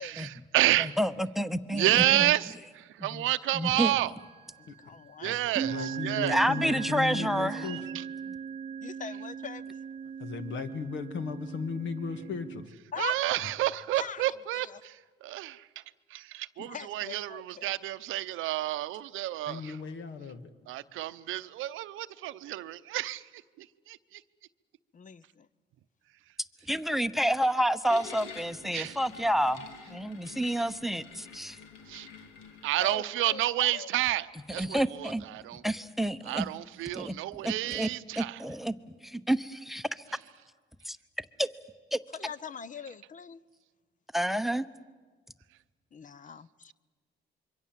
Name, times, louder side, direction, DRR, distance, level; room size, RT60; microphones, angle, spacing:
voice 1, 0.0-1.0 1.7-4.1 5.2-6.4 7.6-8.0 13.0-15.8 16.1-19.8 20.7-23.3 23.6-24.2 28.7-29.0 31.9-32.1 32.6-35.6 36.2-38.4, right 15 dB, 85° right, 0.7 m, -30 dB
voice 2, 0.8-2.3 3.0-3.2 3.5-4.0 6.3-7.7 26.7-31.6 34.6-35.2 35.6-36.5 36.9-37.1 37.4-37.9 38.2-38.7 39.0-39.9 40.9-41.0 41.4-41.5 41.9-42.0 44.1-44.7, equal, ahead, 0.8 m, -29 dB
sound 1, 4.2-4.7 5.5-12.7, right 7 dB, 30° right, 0.7 m, -38 dB
voice 3, 4.6-6.0 8.8-9.8 12.9-13.4 13.9-14.8 16.6-17.7 24.9-25.5 32.8-33.9 42.1-43.4 45.9-46.7, left 6 dB, 40° left, 0.7 m, -42 dB
voice 4, 5.6-7.8 10.2-12.6 19.5-20.5, left 5 dB, 70° left, 1.9 m, -36 dB
sound 2, 27.9-32.9, left 5 dB, 90° left, 2.1 m, -48 dB
26.5 x 23.5 x 7.5 m
cardioid pair, 90°, 20 cm